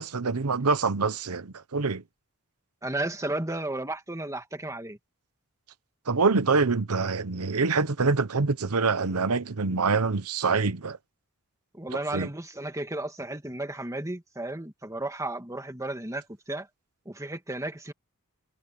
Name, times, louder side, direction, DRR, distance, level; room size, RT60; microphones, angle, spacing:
voice 1, 0.0-2.0 6.1-11.0 12.1-12.3, right 4 dB, 80° right, 0.9 m, -25 dB
voice 2, 2.8-5.0 11.7-16.7 17.1-17.9, right 2 dB, 15° right, 2.5 m, -33 dB
head